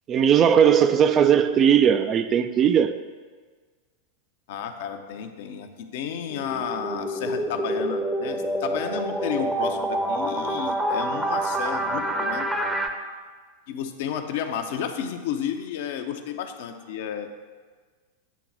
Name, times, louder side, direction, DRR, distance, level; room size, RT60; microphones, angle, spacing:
voice 1, 0.1-2.9, right 8 dB, 30° right, 0.4 m, -18 dB
voice 2, 4.5-12.5 13.7-17.3, left 8 dB, 50° left, 0.6 m, -32 dB
sound 1, 6.3-12.9, right 1 dB, 5° right, 0.7 m, -27 dB
8.2 x 3.8 x 5.9 m
figure-of-eight pair, 90°, 0 cm